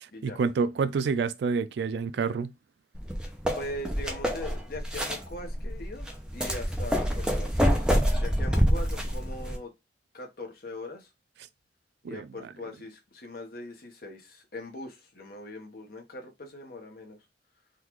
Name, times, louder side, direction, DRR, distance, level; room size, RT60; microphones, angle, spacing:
voice 1, 0.2-2.5 12.0-12.3, right 5 dB, 65° right, 0.3 m, -28 dB
sound 1, 3.0-9.6, equal, 5° right, 0.5 m, -27 dB
voice 2, 3.6-6.1 6.3-7.9 8.2-9.7 10.1-11.1 12.0-17.2, left 1 dB, 55° left, 0.9 m, -41 dB
3.7 x 2.4 x 3.0 m
head